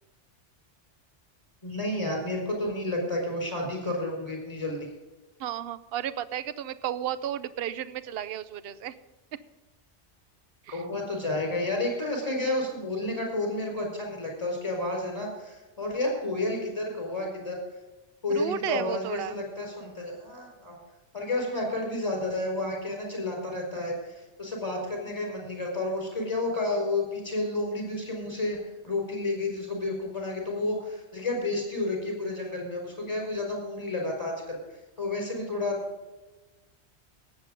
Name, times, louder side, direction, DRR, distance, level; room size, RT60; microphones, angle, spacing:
voice 1, 1.6-4.8 10.7-17.6 18.2-20.8 21.1-28.6 28.8-34.6 35.0-35.8, left 2 dB, 25° left, 0 dB, 5.3 m, -31 dB
voice 2, 5.4-9.0 10.7-10.8 18.3-19.4, right 10 dB, 60° right, 14 dB, 0.9 m, -33 dB
18.5 x 8.3 x 5.2 m, 1.1 s
omnidirectional pair, 1.2 m